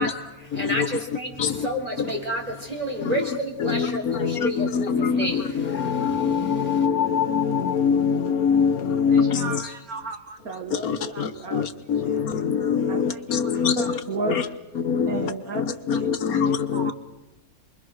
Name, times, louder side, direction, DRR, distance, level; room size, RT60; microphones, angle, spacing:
voice 1, 0.0-6.9, equal, 25° right, 4.1 m, -31 dB
voice 2, 4.2-5.2 5.8-9.4 11.5-11.6 11.9-12.2 12.6-13.7 14.3-14.4 14.9-15.1 15.9-16.9, left 6 dB, 75° left, 1.5 m, -22 dB
voice 3, 9.1-11.6 12.1-12.2 12.9-14.5 15.0-16.9, right 3 dB, 75° right, 1.9 m, -34 dB
27.5 x 22.0 x 6.5 m
omnidirectional pair, 1.6 m